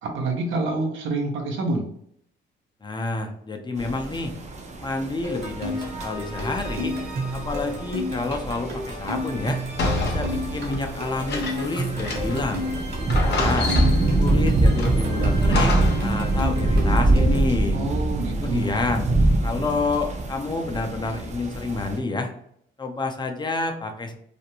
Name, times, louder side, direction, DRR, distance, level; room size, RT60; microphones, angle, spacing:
voice 1, 0.0-1.9 17.7-18.8, right 3 dB, 80° right, 2 dB, 0.7 m, -27 dB
voice 2, 2.8-4.3 4.8-6.9 7.3-9.6 10.0-12.6 13.2-13.8 14.1-17.8 18.4-19.1 19.4-22.3 22.8-24.1, left 3 dB, 20° left, 4 dB, 0.5 m, -29 dB
sound 1, 3.8-22.0, right 1 dB, 35° right, 0.5 m, -25 dB
sound 2, 5.2-17.5, equal, 55° right, 1.1 m, -32 dB
sound 3, 9.8-12.5 12.8-12.9 13.1-14.2 14.8-16.1, left 3 dB, 55° left, 0.7 m, -29 dB
2.5 x 2.1 x 2.9 m, 0.68 s
cardioid pair, 90°, 20 cm